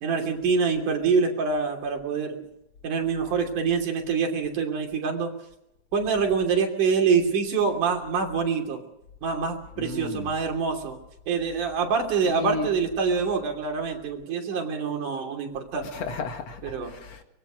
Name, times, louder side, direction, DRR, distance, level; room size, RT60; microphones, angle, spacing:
voice 1, 0.0-2.4 2.8-5.3 5.9-8.8 9.2-11.0 11.3-15.9 16.6-16.9, right 5 dB, 85° right, 4.5 m, -25 dB
voice 2, 9.8-10.3 12.2-12.7 15.9-17.2, left 4 dB, 60° left, 2.8 m, -33 dB
24.5 x 21.0 x 6.3 m
omnidirectional pair, 3.5 m